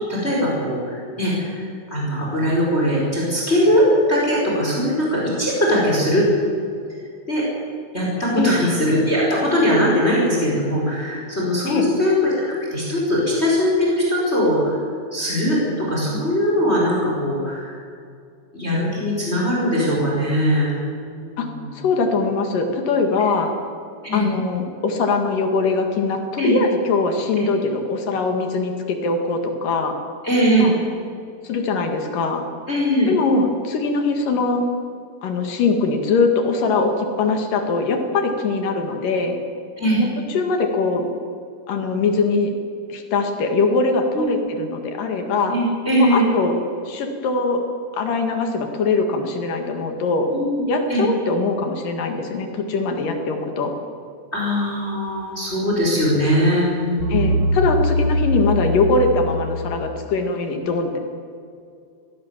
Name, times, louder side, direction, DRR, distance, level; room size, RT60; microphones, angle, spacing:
voice 1, 0.1-6.3 7.3-7.4 7.9-14.8 15.1-17.8 18.5-20.7 21.1-21.8 24.0-24.2 26.4-26.5 27.4-27.5 30.2-30.7 32.7-33.1 39.8-40.0 44.1-44.4 45.5-46.2 50.3-50.6 50.9-51.1 54.3-57.4, equal, 20° left, -4 dB, 5.1 m, -20 dB
voice 2, 21.7-23.5 24.1-30.0 30.6-30.8 31.4-32.4 33.1-34.6 35.2-39.4 40.0-40.1 40.3-41.1 41.7-42.5 42.9-45.5 46.0-46.6 46.9-47.6 47.9-50.3 50.7-53.7 57.1-61.0, left 3 dB, 80° left, 4 dB, 3.5 m, -22 dB
sound 1, 57.0-60.1, equal, 60° right, 3.0 m, -22 dB
22.5 x 17.0 x 7.3 m, 2.4 s
omnidirectional pair, 3.8 m